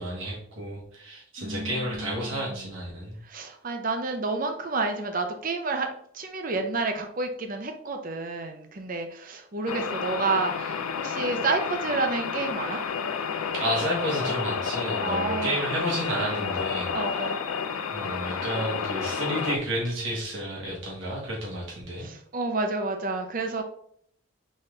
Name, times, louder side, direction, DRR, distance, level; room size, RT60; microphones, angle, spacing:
voice 1, 0.0-3.2 13.5-17.1 17.9-22.1, right 1 dB, 65° right, -4 dB, 1.4 m, -31 dB
voice 2, 1.4-2.7 3.2-5.9 6.1-12.8 15.0-15.6 16.9-17.4 22.0-23.6, right 3 dB, 40° right, 5 dB, 0.6 m, -30 dB
sound 1, 9.7-19.6, left 6 dB, 85° left, 0.4 m, -30 dB
4.2 x 3.4 x 3.7 m, 0.65 s
head